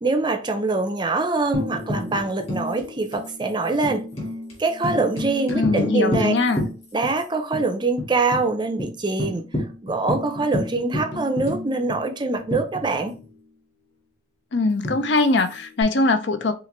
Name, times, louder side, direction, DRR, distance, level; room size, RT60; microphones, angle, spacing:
voice 1, 0.0-4.1 4.6-6.3 6.9-9.4 9.8-13.2, right 3 dB, 20° right, 0.5 m, -24 dB
Tambourine, 1.5-7.2 7.5-7.6 8.0-8.4 8.8-8.9 9.2-13.3 14.8-15.8, left 1 dB, 30° left, 2.2 m, -31 dB
voice 2, 5.5-6.7 14.5-16.5, left 3 dB, 60° left, 0.6 m, -21 dB
5.6 x 2.5 x 3.2 m
head